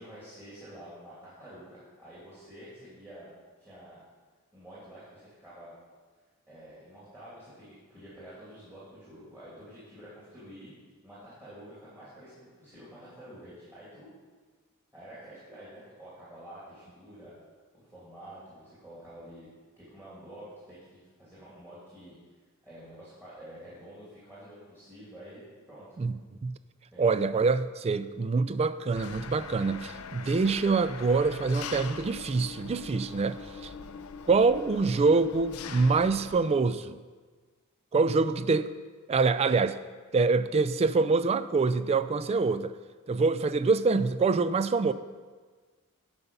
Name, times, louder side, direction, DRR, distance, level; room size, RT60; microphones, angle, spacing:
voice 1, 0.0-3.3 3.6-4.0 4.5-5.7 6.5-10.7 11.0-14.1 14.9-17.3 17.7-19.5 19.8-22.2 22.6-26.0 26.9-27.2 33.8-34.1, right 1 dB, 10° right, -10 dB, 2.6 m, -48 dB
voice 2, 27.0-33.7 34.3-37.0 37.9-38.7 39.1-39.8 40.1-42.7 43.1-44.9, right 4 dB, 30° right, 13 dB, 0.3 m, -25 dB
Engine, 29.0-36.4, left 6 dB, 75° left, 0.5 m, -42 dB
9.7 x 5.7 x 5.4 m, 1.4 s
head